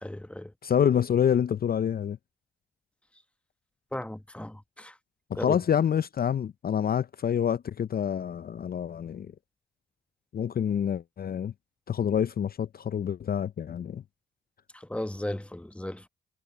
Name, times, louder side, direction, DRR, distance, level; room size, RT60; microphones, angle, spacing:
voice 1, 0.0-0.5 3.9-4.9 5.3-5.6 14.7-16.1, left 1 dB, 5° left, 1.1 m, -35 dB
voice 2, 0.6-2.2 5.3-9.3 10.3-11.5 11.9-14.0, left 8 dB, 50° left, 0.5 m, -27 dB
supercardioid pair, 50°, 20 cm